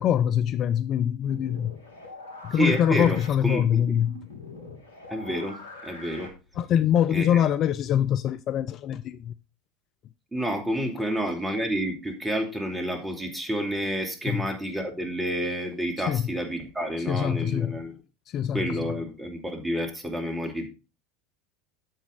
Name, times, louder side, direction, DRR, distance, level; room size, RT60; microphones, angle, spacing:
voice 1, 0.0-1.7 2.4-4.2 6.6-9.3 14.2-14.4 16.1-16.2 17.1-17.7 18.3-18.8, left 9 dB, 45° left, 0.5 m, -24 dB
sound 1, 1.2-6.8, left 3 dB, 75° left, 2.0 m, -44 dB
voice 2, 2.5-4.0 5.1-6.3 7.1-7.4 10.3-18.0 18.5-20.7, equal, 10° right, 2.7 m, -29 dB
9.2 x 7.3 x 3.9 m
figure-of-eight pair, 75°, 0 cm